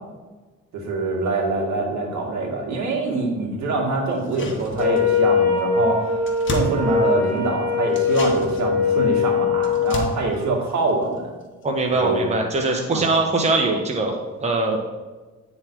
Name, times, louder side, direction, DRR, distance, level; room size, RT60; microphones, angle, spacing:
voice 1, 0.7-6.1 6.5-11.3 11.9-12.3 12.9-13.0, right 3 dB, 70° right, 0 dB, 2.0 m, -24 dB
sound 1, 4.1-5.3 5.6-5.7 5.9-7.5 7.9-11.6 11.9-12.0, left 2 dB, 40° left, 1.5 m, -33 dB
Wind instrument woodwind instrument, 4.7-10.0, left 5 dB, 5° left, 2.3 m, -21 dB
voice 2, 11.6-14.8, right 2 dB, 20° right, 1 dB, 1.1 m, -22 dB
9.5 x 4.0 x 4.6 m, 1.2 s
cardioid pair, 90°, 30 cm